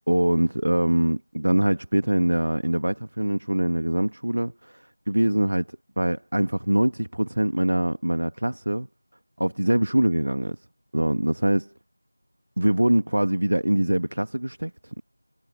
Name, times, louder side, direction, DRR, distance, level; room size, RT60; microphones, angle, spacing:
voice 1, 0.0-8.9 9.4-10.6 10.9-11.7 12.6-15.0, right 1 dB, 70° right, 1.6 m, -23 dB
figure-of-eight pair, 175°, 0 cm